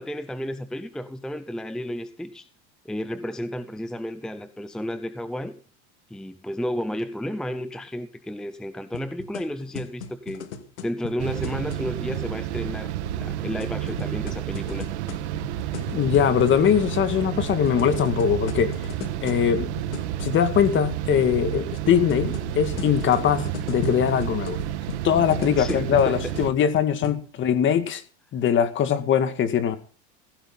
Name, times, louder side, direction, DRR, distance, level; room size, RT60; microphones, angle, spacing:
voice 1, 0.0-2.5 2.8-5.6 6.1-10.5 10.8-14.9 25.5-26.3, equal, ahead, 0.7 m, -32 dB
sound 1, 8.9-12.3 13.2-16.6 17.4-20.9 21.7-27.1, left 6 dB, 90° left, 2.3 m, -38 dB
sound 2, 11.2-26.5, right 12 dB, 80° right, 1.4 m, -30 dB
voice 2, 15.9-18.8 19.2-19.7 20.2-24.6 25.0-28.0 28.3-29.8, left 8 dB, 35° left, 2.1 m, -22 dB
16.0 x 16.0 x 4.0 m
supercardioid pair, 130°, 33 cm